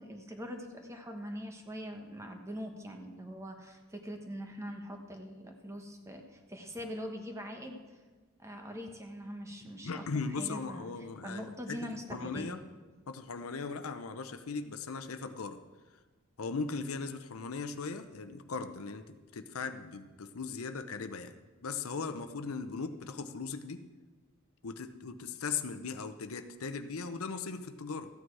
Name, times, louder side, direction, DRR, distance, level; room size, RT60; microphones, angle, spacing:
voice 1, 0.0-7.8 8.4-10.1 10.4-10.9 11.2-12.6, equal, 15° right, 4 dB, 1.1 m, -43 dB
voice 2, 9.8-11.8 12.1-12.6 13.1-15.6 16.4-21.3 21.6-23.8 24.6-28.1, left 4 dB, 85° left, 9 dB, 0.7 m, -38 dB
14.5 x 8.9 x 4.7 m, 1.3 s
head